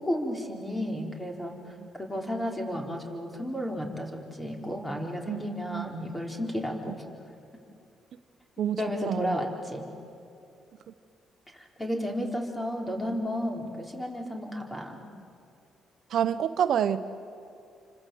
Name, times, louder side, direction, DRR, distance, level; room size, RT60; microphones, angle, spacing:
voice 1, 0.0-1.6 1.9-4.1 4.4-7.1 8.8-9.9 11.5-15.1, equal, 10° left, 1 dB, 4.3 m, -32 dB
voice 2, 9.1-9.4 16.1-17.0, right 9 dB, 70° right, 12 dB, 0.8 m, -27 dB
29.0 x 25.5 x 7.9 m, 2.6 s
cardioid pair, 90°, 0 cm